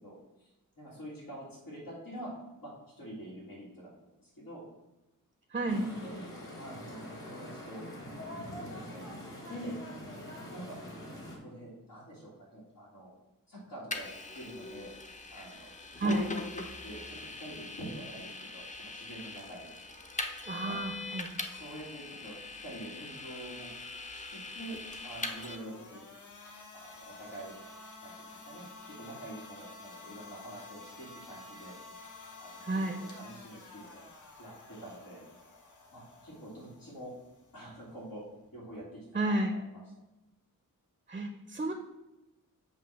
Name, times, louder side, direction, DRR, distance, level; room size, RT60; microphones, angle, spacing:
voice 1, 0.0-0.5 0.8-2.3 2.6-3.9 4.2-4.6 6.0-6.3 6.6-8.2 8.5-9.0 9.5-9.8 10.5-10.8 11.2-13.1 13.5-14.1 14.4-14.9 15.3-19.7 20.5-20.7 21.4-23.7 24.1-24.8 25.0-26.0 26.7-27.5 28.0-31.8 32.3-34.0 34.4-35.2 35.9-37.1 37.5-38.2 38.5-39.6, right 1 dB, 80° left, -7 dB, 2.3 m, -46 dB
voice 2, 5.5-5.9 16.0-16.3 20.5-21.3 32.6-33.0 39.1-39.6 41.1-41.7, right 2 dB, 25° right, 5 dB, 0.5 m, -31 dB
sound 1, 5.7-11.4, equal, 40° left, 1.7 m, -44 dB
Vehicle, 13.9-25.6, left 3 dB, 20° left, 0.6 m, -42 dB
sound 2, 24.9-38.8, left 3 dB, 60° left, 1.1 m, -51 dB
8.0 x 2.7 x 5.9 m, 0.97 s
wide cardioid pair, 145°, 34 cm